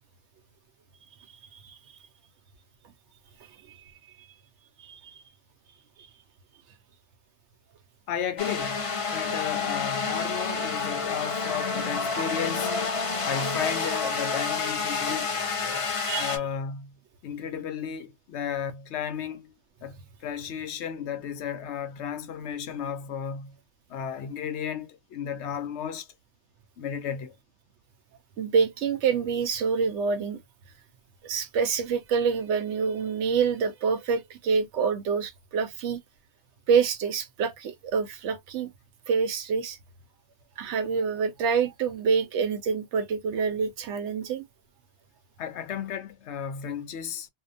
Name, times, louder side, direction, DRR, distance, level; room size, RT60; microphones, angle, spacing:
voice 1, 4.8-5.2 16.1-16.4 28.4-30.4 31.2-36.0 36.7-38.7 39.1-39.8 40.6-44.5, right 6 dB, 85° right, 1.0 m, -26 dB
voice 2, 8.1-8.8 9.1-12.7 13.2-15.4 16.2-16.9 17.2-19.5 19.8-23.5 23.9-26.1 26.8-27.3 45.4-47.3, left 8 dB, 75° left, 0.9 m, -34 dB
sound 1, 8.4-16.4, left 4 dB, 40° left, 0.5 m, -29 dB
2.7 x 2.1 x 2.5 m
omnidirectional pair, 1.2 m